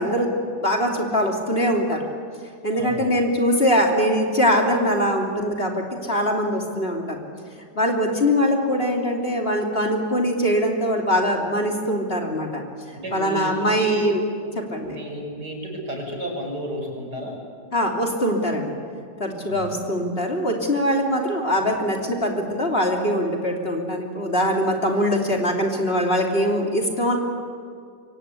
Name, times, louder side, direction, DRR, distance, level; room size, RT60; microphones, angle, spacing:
voice 1, 0.0-2.0 2.6-7.2 7.7-12.6 13.1-14.2 14.5-15.0 17.7-18.8 19.2-27.2, equal, 35° left, 1 dB, 3.1 m, -22 dB
voice 2, 2.7-3.1 12.9-14.1 14.9-17.3 19.5-19.7, right 1 dB, 70° right, 1 dB, 6.4 m, -32 dB
26.5 x 24.5 x 8.3 m, 2.2 s
omnidirectional pair, 1.8 m